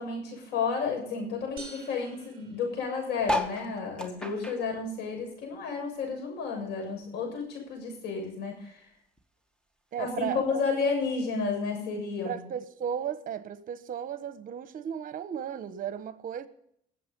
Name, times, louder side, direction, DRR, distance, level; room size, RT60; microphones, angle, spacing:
voice 1, 0.0-8.9 10.0-12.4, left 5 dB, 80° left, 7.0 m, -32 dB
sound 1, 1.6-3.4, right 3 dB, 35° right, 6.7 m, -49 dB
sound 2, 3.2-6.0 6.3-7.8 8.3-8.4 8.6-8.7 8.9-9.3 10.1-10.2, left 1 dB, 5° left, 1.9 m, -35 dB
voice 2, 9.9-10.4 12.2-16.5, right 8 dB, 55° right, 1.2 m, -35 dB
20.0 x 8.0 x 5.4 m
cardioid pair, 110°, 17 cm